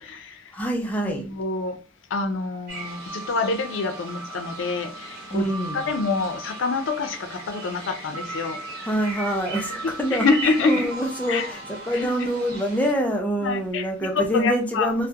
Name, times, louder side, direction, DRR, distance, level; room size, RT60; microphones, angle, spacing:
voice 1, 0.0-0.4 1.0-1.8 2.1-5.5 5.7-8.6 9.8-10.9 11.3-11.5 11.9-12.3 13.4-14.9, left 4 dB, 85° left, 8 dB, 0.4 m, -26 dB
voice 2, 0.5-1.2 5.3-5.8 8.9-10.3 10.6-15.1, right 1 dB, 10° left, 1 dB, 0.4 m, -25 dB
sound 1, 2.7-12.9, right 2 dB, 60° right, 1.0 m, -36 dB
2.3 x 2.1 x 2.7 m, 0.35 s
head